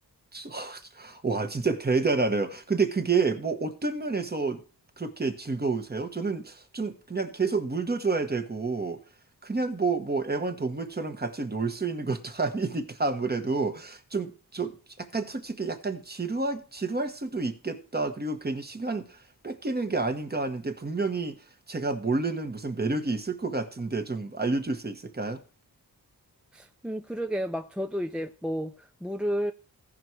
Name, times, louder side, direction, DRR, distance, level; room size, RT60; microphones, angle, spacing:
voice 1, 0.3-4.6 5.0-9.0 9.4-19.2 19.4-21.4 21.7-25.4, right 3 dB, 25° right, 1.2 m, -29 dB
voice 2, 26.5-29.5, equal, 5° right, 0.4 m, -31 dB
16.0 x 5.6 x 4.6 m
wide cardioid pair, 130°, 38 cm